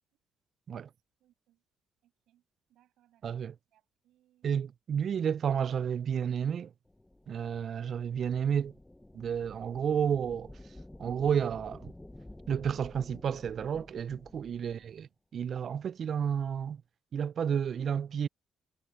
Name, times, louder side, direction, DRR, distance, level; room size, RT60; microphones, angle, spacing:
voice 1, 1.2-1.6 2.0-4.5 14.6-15.0, right 13 dB, 75° right, 6.7 m, -70 dB
voice 2, 3.2-3.5 4.4-6.7 7.3-8.7 9.1-10.5 11.0-11.9 12.5-15.1 15.3-16.8 17.1-18.3, right 8 dB, 55° right, 0.3 m, -31 dB
sound 1, 6.9-14.9, left 1 dB, 10° left, 0.7 m, -51 dB
supercardioid pair, 70°, 0 cm